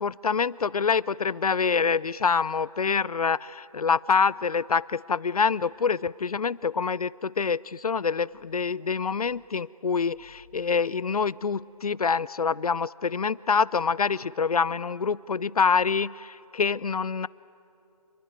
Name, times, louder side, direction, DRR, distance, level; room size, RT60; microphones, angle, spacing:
voice 1, 0.0-17.3, left 5 dB, 70° left, 22 dB, 0.6 m, -26 dB
27.5 x 21.5 x 9.4 m, 2.6 s
figure-of-eight pair, 165°, 19 cm